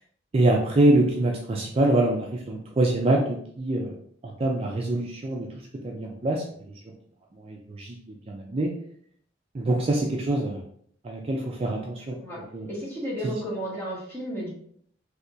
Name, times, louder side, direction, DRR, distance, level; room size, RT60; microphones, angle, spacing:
voice 1, 0.3-4.0 4.2-5.5 5.8-6.4 7.4-8.0 8.3-8.7 9.5-10.6 11.0-12.2 12.5-12.7 13.2-13.4, right 1 dB, 30° right, 0 dB, 0.4 m, -24 dB
voice 2, 12.1-12.4 12.7-14.5, equal, 15° left, -6 dB, 1.3 m, -33 dB
3.4 x 2.8 x 2.7 m, 0.62 s
head